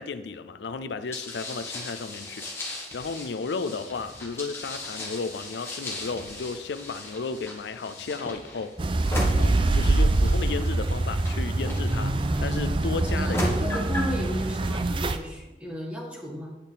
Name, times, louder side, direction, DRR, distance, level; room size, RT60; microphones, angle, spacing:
voice 1, 0.0-9.0 9.4-13.4, left 4 dB, 85° left, 11 dB, 0.4 m, -34 dB
sound 1, 1.1-12.4 13.1-14.2, left 1 dB, 15° left, 1.5 m, -37 dB
sound 2, 8.8-15.2, right 2 dB, 30° right, 0.4 m, -24 dB
voice 2, 12.9-16.5, left 1 dB, 5° right, -2 dB, 1.6 m, -34 dB
8.8 x 7.3 x 4.0 m, 1.0 s
head